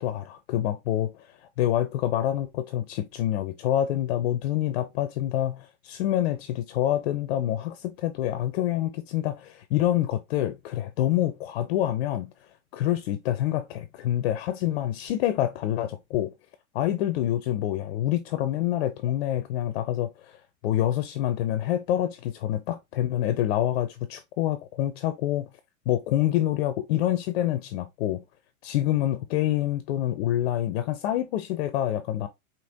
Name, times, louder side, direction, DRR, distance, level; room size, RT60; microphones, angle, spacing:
voice 1, 0.0-12.3 12.7-16.3 16.7-25.5 25.9-28.2 28.6-32.3, left 12 dB, 45° left, 0.6 m, -27 dB
5.0 x 2.9 x 2.7 m
hypercardioid pair, 110°, 42 cm